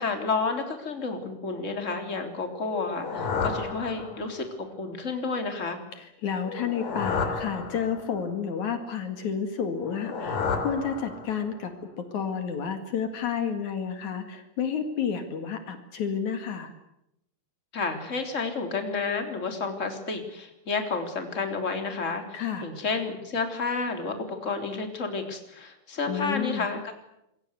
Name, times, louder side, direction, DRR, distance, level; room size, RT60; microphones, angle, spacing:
voice 1, 0.0-5.8 17.7-26.9, left 4 dB, 25° left, 5 dB, 3.6 m, -31 dB
sound 1, 2.7-4.5 6.4-8.3 9.7-11.6, left 5 dB, 90° left, 4.6 m, -32 dB
voice 2, 5.9-16.7 22.3-22.7 26.1-26.7, left 7 dB, 70° left, 7 dB, 3.5 m, -31 dB
27.0 x 22.5 x 8.2 m, 0.82 s
omnidirectional pair, 3.6 m